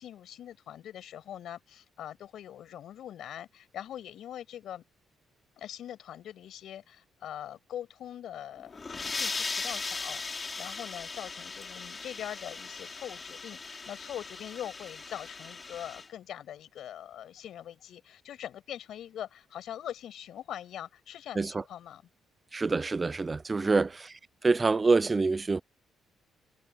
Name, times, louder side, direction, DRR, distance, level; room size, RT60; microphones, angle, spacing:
voice 1, 0.0-4.8 5.6-22.0 23.6-23.9, left 11 dB, 75° left, 6.1 m, -42 dB
sound 1, 8.6-16.1, left 4 dB, 30° left, 3.7 m, -38 dB
voice 2, 22.5-24.1 24.4-25.6, right 3 dB, 25° right, 0.5 m, -26 dB
cardioid pair, 90°, 0 cm